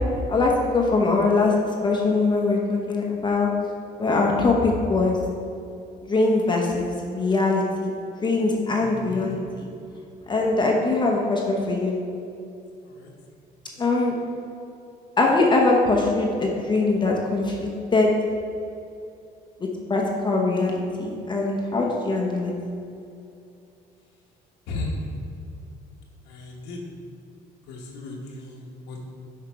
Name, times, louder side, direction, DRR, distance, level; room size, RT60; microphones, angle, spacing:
voice 1, 0.3-1.5 1.8-3.5 4.0-5.2 6.0-7.9 8.2-9.4 10.3-12.0 13.8-14.1 15.2-18.1 19.9-22.5, left 3 dB, 25° left, -1 dB, 0.9 m, -22 dB
voice 2, 24.7-25.1 26.3-26.8 27.7-29.0, left 2 dB, 90° left, -1 dB, 1.1 m, -35 dB
5.7 x 5.6 x 4.7 m, 2.6 s
cardioid pair, 110°, 17 cm